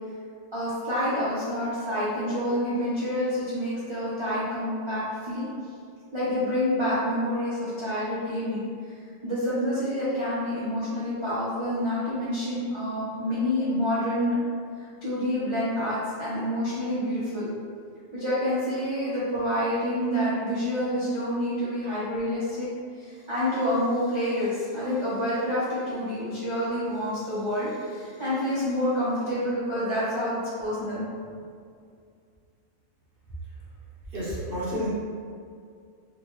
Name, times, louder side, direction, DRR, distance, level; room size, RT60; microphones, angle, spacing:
voice 1, 0.5-5.5 6.1-8.6 9.2-14.4 15.0-17.5 18.1-22.7 23.0-31.1, left 1 dB, 35° right, -11 dB, 0.5 m, -28 dB
voice 2, 34.1-34.9, equal, 50° right, -7 dB, 0.9 m, -30 dB
3.8 x 2.2 x 3.0 m, 2.3 s
omnidirectional pair, 1.4 m